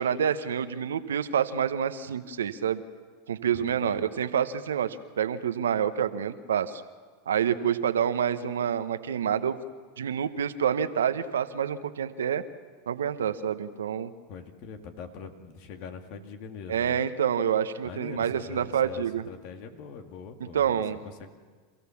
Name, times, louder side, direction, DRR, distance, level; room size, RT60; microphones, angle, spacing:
voice 1, 0.0-2.8 3.3-6.8 7.3-9.6 10.0-12.4 12.9-14.1 16.7-19.2 20.5-21.0, right 8 dB, 85° right, 11 dB, 1.0 m, -27 dB
voice 2, 3.5-4.0 14.3-17.0 17.8-21.3, left 6 dB, 60° left, 6 dB, 2.1 m, -43 dB
27.5 x 15.5 x 7.1 m, 1.5 s
hypercardioid pair, 100°, 0 cm